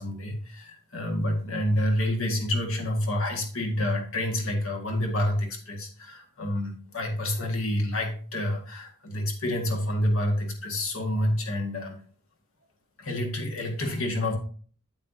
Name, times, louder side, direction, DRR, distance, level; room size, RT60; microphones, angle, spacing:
voice 1, 0.0-12.0 13.0-14.4, left 1 dB, 70° left, 2 dB, 1.8 m, -28 dB
8.8 x 7.7 x 2.7 m, 0.43 s
head